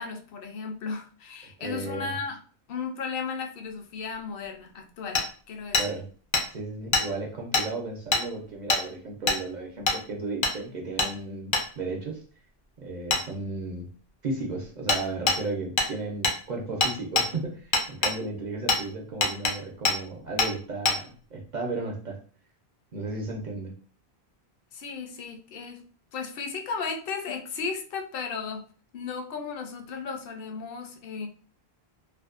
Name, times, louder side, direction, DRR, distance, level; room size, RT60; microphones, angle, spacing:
voice 1, 0.0-2.4 2.7-5.8 24.7-25.8 26.1-28.7 28.9-31.3, left 5 dB, 65° left, 4 dB, 0.7 m, -35 dB
voice 2, 1.6-2.2 5.8-6.1 6.5-12.2 12.8-13.9 14.2-22.2 22.9-23.7, right 3 dB, 55° right, -1 dB, 0.6 m, -34 dB
Hammer, 5.2-5.3 5.7-5.9 6.3-6.4 6.9-7.1 7.5-7.7 8.1-8.2 8.7-8.8 9.3-9.4 9.9-10.0 10.4-10.6 11.0-11.1 11.5-11.7 13.1-13.2 14.9-15.0 15.3-15.4 15.8-15.9 16.2-16.4 16.8-17.3 17.7-18.2 18.7-18.8 19.2-19.5 19.9-20.0 20.4-20.5 20.9-21.0, left 3 dB, 50° left, 0.3 m, -23 dB
2.5 x 2.1 x 2.4 m, 0.41 s
omnidirectional pair, 1.1 m